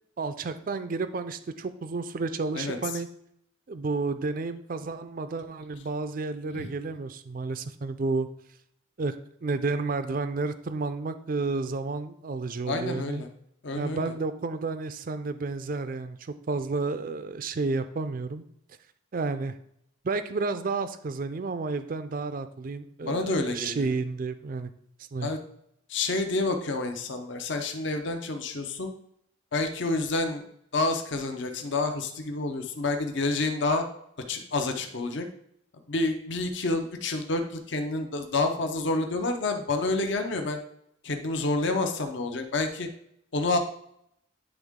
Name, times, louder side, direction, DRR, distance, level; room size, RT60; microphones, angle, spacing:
voice 1, 0.2-3.1 3.7-8.3 9.0-9.1 9.4-13.2 13.8-18.4 19.1-19.6 20.0-24.7 25.1-25.3, right 3 dB, 45° right, 11 dB, 0.4 m, -31 dB
voice 2, 12.7-13.3 13.6-14.1 23.0-23.9 25.2-25.4 25.9-28.9 29.5-30.4 30.7-33.8 34.3-35.3 35.9-40.6 41.0-42.9 43.3-43.6, left 2 dB, 65° left, 5 dB, 0.8 m, -28 dB
9.9 x 3.6 x 3.6 m, 0.72 s
head